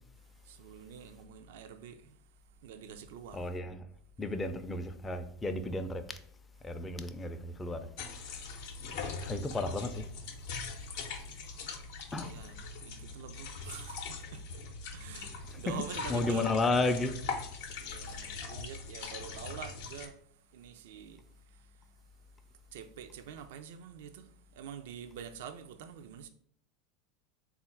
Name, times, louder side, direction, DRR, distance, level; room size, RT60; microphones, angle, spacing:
voice 1, 0.4-2.2 2.6-3.5 12.1-16.6 17.7-20.2 20.5-21.7 22.7-26.3, right 8 dB, 75° right, 0.3 m, -46 dB
voice 2, 3.3-3.8 4.2-6.0 6.6-7.8 9.3-10.0 12.1-12.3 15.5-15.6 16.1-17.2, left 2 dB, 15° left, 0.4 m, -32 dB
sound 1, 8.0-20.1, left 4 dB, 70° left, 0.6 m, -41 dB
3.7 x 2.4 x 4.2 m
hypercardioid pair, 95°, 0 cm